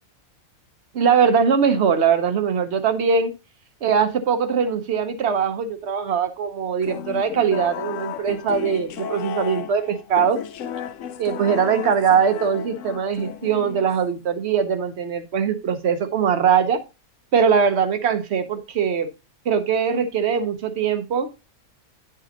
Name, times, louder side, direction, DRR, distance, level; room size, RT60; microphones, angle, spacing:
voice 1, 0.9-3.3 3.8-10.4 11.2-16.8 17.3-19.1 19.4-21.3, right 7 dB, 55° right, 9 dB, 1.0 m, -21 dB
sound 1, 6.8-14.2, left 9 dB, 70° left, 0.9 m, -33 dB
10.0 x 5.0 x 2.8 m, 0.28 s
omnidirectional pair, 1.5 m